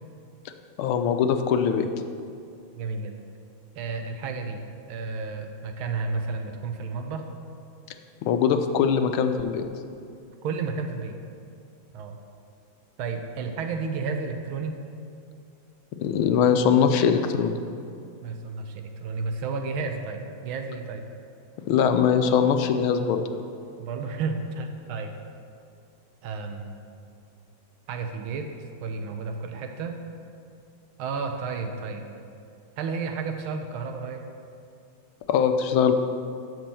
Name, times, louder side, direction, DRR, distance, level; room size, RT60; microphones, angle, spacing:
voice 1, 0.8-1.9 8.2-9.6 16.0-17.6 21.7-23.2 35.3-35.9, left 7 dB, 85° left, 7 dB, 1.5 m, -21 dB
voice 2, 2.7-3.1 3.7-4.6 4.9-7.3 10.4-11.2 11.9-12.2 13.0-14.7 18.2-21.0 23.8-25.1 26.2-26.7 27.9-28.5 28.8-30.0 31.0-32.0 32.8-34.2, right 4 dB, 85° right, 5 dB, 1.7 m, -32 dB
12.0 x 4.5 x 6.9 m, 2.4 s
omnidirectional pair, 2.3 m